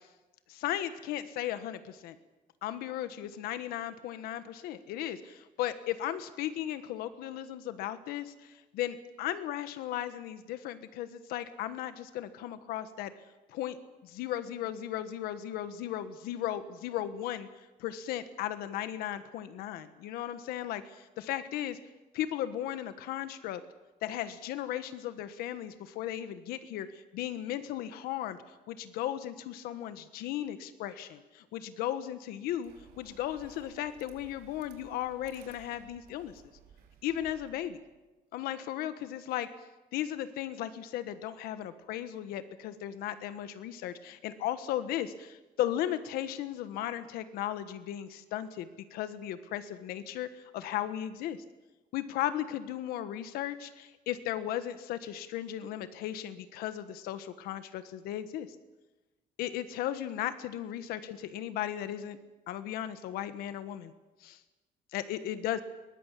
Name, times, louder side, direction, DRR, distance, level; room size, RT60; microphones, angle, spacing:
voice 1, 0.5-2.2 2.6-13.1 13.5-13.8 14.0-17.5 17.8-21.8 22.1-23.6 24.0-28.4 28.7-36.3 37.0-37.8 38.3-39.5 39.9-51.4 51.9-58.5 59.4-62.2 62.5-63.9 64.2-64.4 64.9-65.6, left 12 dB, 90° left, 11 dB, 1.5 m, -36 dB
sound 1, 32.6-38.0, right 8 dB, 90° right, 4.3 m, -57 dB
22.5 x 19.5 x 8.4 m, 1.1 s
cardioid pair, 135°, 15 cm